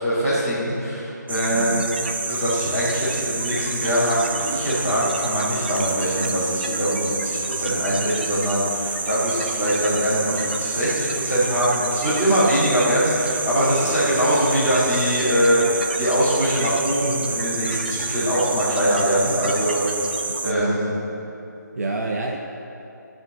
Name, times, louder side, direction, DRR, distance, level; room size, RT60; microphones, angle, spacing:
voice 1, 0.0-1.9 2.2-20.9, equal, 10° right, -13 dB, 1.9 m, -22 dB
sound 1, 1.3-20.5, right 3 dB, 30° right, 0.6 m, -28 dB
voice 2, 1.5-1.9 20.4-20.8 21.7-22.4, right 2 dB, 55° right, 0 dB, 0.9 m, -27 dB
13.5 x 5.3 x 7.6 m, 2.9 s
figure-of-eight pair, 175°, 10 cm